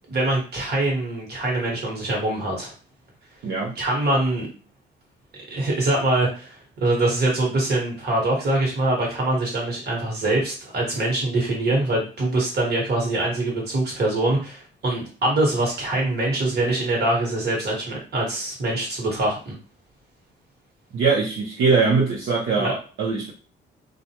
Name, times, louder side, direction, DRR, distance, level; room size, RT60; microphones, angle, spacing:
voice 1, 0.1-2.7 3.8-4.5 5.5-19.5 22.6-22.7, right 2 dB, 55° right, -2 dB, 1.4 m, -24 dB
voice 2, 3.4-3.7 20.9-23.3, right 4 dB, 80° right, -6 dB, 0.9 m, -22 dB
2.5 x 2.2 x 2.9 m, 0.37 s
cardioid pair, 90°, 20 cm